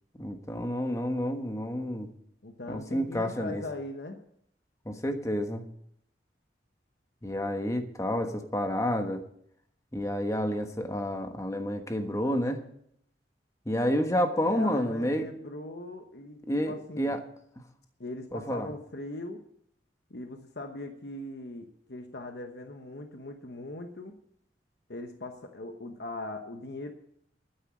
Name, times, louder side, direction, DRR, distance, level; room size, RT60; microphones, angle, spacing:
voice 1, 0.2-2.1 2.7-3.6 4.8-5.6 7.2-9.2 9.9-12.6 13.7-15.3 16.5-17.2 18.3-18.7, equal, 15° left, 6 dB, 1.3 m, -29 dB
voice 2, 2.4-4.2 14.4-17.1 18.0-19.4 20.1-24.2 24.9-26.9, left 2 dB, 60° left, 5 dB, 1.1 m, -40 dB
12.5 x 9.9 x 6.3 m, 0.69 s
head